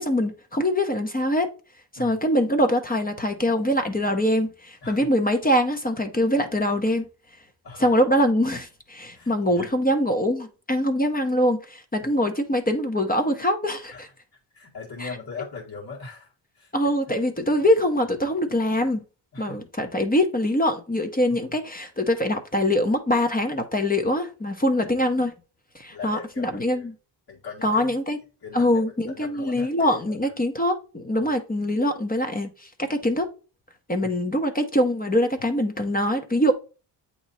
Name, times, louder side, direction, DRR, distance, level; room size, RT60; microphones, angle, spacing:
voice 1, 0.0-1.5 1.9-7.0 7.8-14.1 15.0-15.1 16.7-19.0 19.4-25.3 25.7-26.9 27.6-28.2 28.5-33.3 33.9-36.5, equal, 20° left, 0.9 m, -23 dB
voice 2, 9.1-9.7 12.0-12.1 13.9-14.0 14.5-16.7 17.1-17.2 19.3-19.6 25.9-26.9 27.3-27.9 28.4-30.3 31.1-31.3 34.0-34.1, left 4 dB, 50° left, 1.8 m, -40 dB
7.9 x 3.1 x 4.1 m
cardioid pair, 70°, 45 cm